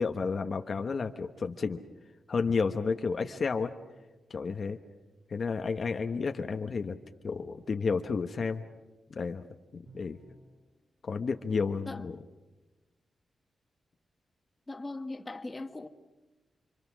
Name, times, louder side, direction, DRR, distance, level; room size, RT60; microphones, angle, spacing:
voice 1, 0.0-1.8 2.3-3.7 4.3-4.8 5.3-7.0 7.2-8.6 9.1-9.4 9.7-10.2 11.0-12.2, left 5 dB, 50° left, 1.1 m, -31 dB
Bowed string instrument, 9.9-10.7, right 2 dB, 65° right, 5.1 m, -56 dB
voice 2, 14.7-15.9, left 2 dB, 20° left, 1.4 m, -39 dB
29.0 x 24.5 x 6.3 m
wide cardioid pair, 115°, 0 cm